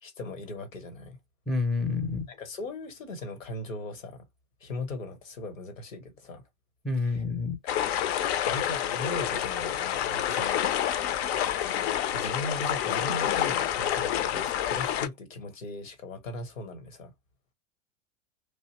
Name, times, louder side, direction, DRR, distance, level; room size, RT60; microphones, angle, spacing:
voice 1, 0.0-1.2 2.3-4.3 4.6-6.4 7.0-7.2 8.5-10.6 12.1-17.1, left 2 dB, 80° left, 1.0 m, -38 dB
voice 2, 1.5-2.3 6.8-7.6, left 3 dB, ahead, 0.4 m, -28 dB
sound 1, 7.7-15.1, left 10 dB, 55° left, 0.5 m, -28 dB
2.7 x 2.0 x 2.9 m
hypercardioid pair, 90°, 39 cm